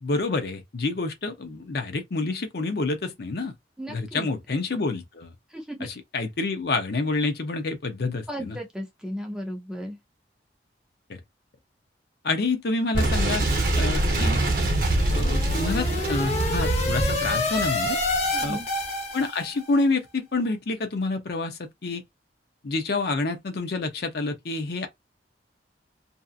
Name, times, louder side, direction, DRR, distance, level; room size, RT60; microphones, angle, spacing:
voice 1, 0.0-3.5 3.9-5.3 5.8-8.6 11.1-11.2 12.2-13.4 13.8-14.4 15.0-18.0 18.4-18.6 19.1-22.0 22.6-24.9, left 3 dB, 60° left, 0.6 m, -28 dB
voice 2, 3.8-4.3 5.5-5.9 8.3-10.0 18.3-18.7, equal, 5° right, 0.6 m, -35 dB
Boom, 12.9-18.5, right 1 dB, 50° right, 0.7 m, -24 dB
sound 1, 14.7-19.7, left 2 dB, 35° left, 0.9 m, -28 dB
2.7 x 2.5 x 2.3 m
head